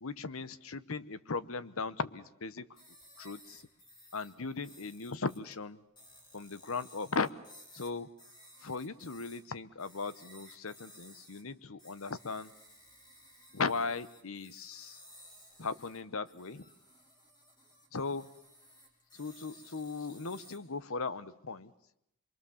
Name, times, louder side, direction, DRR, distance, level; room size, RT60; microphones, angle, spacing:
voice 1, 0.0-2.7 3.2-3.6 4.1-5.8 6.3-7.3 7.7-8.1 8.6-12.5 13.5-15.0 15.6-16.6 17.9-18.3 19.1-21.7, left 4 dB, 70° left, 15 dB, 0.9 m, -37 dB
sound 1, 2.7-5.5 6.0-9.4 9.8-11.4 11.8-20.6, equal, 20° left, 3.9 m, -57 dB
25.5 x 23.5 x 7.1 m, 0.80 s
head